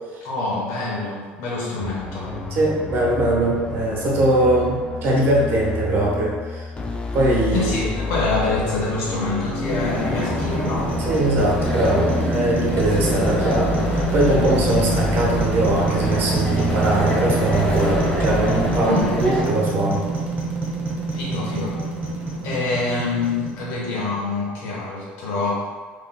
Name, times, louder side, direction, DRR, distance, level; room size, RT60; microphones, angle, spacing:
voice 1, 0.2-2.3 7.5-11.0 18.8-19.1 21.1-21.8 22.4-25.6, left 3 dB, 70° left, -4 dB, 1.1 m, -26 dB
sound 1, 1.8-18.8, left 3 dB, 20° left, 0.4 m, -29 dB
voice 2, 2.5-6.7 7.1-7.7 11.0-20.0, right 1 dB, 55° right, -3 dB, 1.0 m, -21 dB
sound 2, 9.0-24.2, right 3 dB, 35° right, 1.3 m, -27 dB
sound 3, 9.7-19.4, equal, 40° left, 1.2 m, -27 dB
3.7 x 3.1 x 2.2 m, 1.5 s
supercardioid pair, 80°, 5 cm